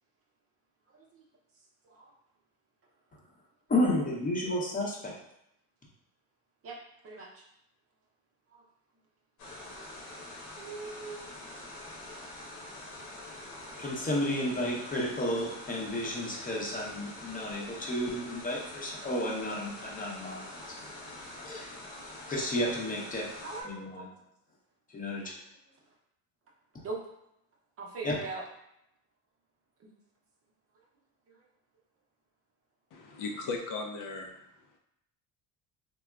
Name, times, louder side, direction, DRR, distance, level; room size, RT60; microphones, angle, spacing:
voice 1, 3.7-5.2 13.8-20.5 20.8-20.9 21.4-21.7 22.3-23.2 23.6-24.1 24.9-25.3 28.0-28.2, left 1 dB, 20° left, -3 dB, 0.7 m, -32 dB
voice 2, 7.0-7.4 8.5-8.6 10.6-11.3 13.3-13.8 23.4-24.0 25.2-25.3 26.8-27.0 27.8-28.4 29.8-29.9 31.3-31.4, right 3 dB, 40° right, -2 dB, 0.7 m, -41 dB
sound 1, 9.4-23.6, left 1 dB, 85° left, 1.0 m, -45 dB
voice 3, 32.9-34.3, left 3 dB, 60° left, 2 dB, 0.5 m, -36 dB
3.4 x 2.1 x 2.3 m, 0.79 s
cardioid pair, 105°, 37 cm